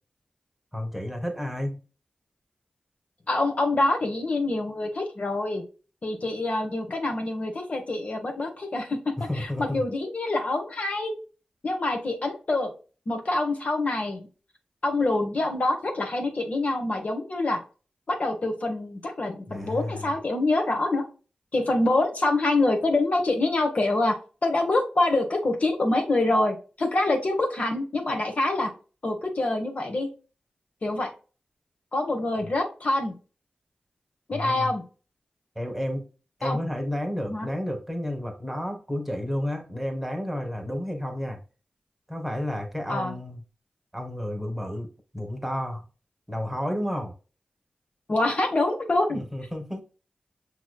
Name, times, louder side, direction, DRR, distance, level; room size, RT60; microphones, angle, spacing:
voice 1, 0.7-1.8 9.2-9.8 19.5-20.1 34.3-34.7 35.5-36.0 36.4-41.4 42.1-43.4 43.9-45.8 46.3-47.1 49.1-49.8, left 1 dB, 5° right, 1.3 m, -31 dB
voice 2, 3.3-5.6 6.0-11.1 11.6-12.7 13.1-14.2 14.8-17.6 18.1-21.0 21.5-24.2 24.4-28.7 29.0-30.1 30.8-31.1 31.9-33.1 34.3-34.8 36.4-36.6 37.3-37.5 42.9-43.1 48.1-49.2, left 2 dB, 55° left, 1.1 m, -25 dB
5.8 x 3.0 x 2.2 m
cardioid pair, 60°, 3 cm